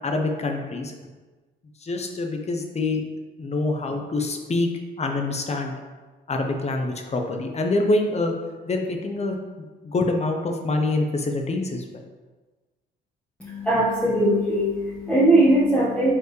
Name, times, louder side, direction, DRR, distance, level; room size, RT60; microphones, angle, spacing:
voice 1, 0.0-1.0 1.8-3.0 3.4-4.7 5.0-5.7 6.3-8.3 8.7-11.8, left 2 dB, 35° left, 3 dB, 0.9 m, -25 dB
voice 2, 13.4-16.1, right 1 dB, 5° left, -10 dB, 1.6 m, -20 dB
7.0 x 4.5 x 3.3 m, 1.3 s
cardioid pair, 90°, 20 cm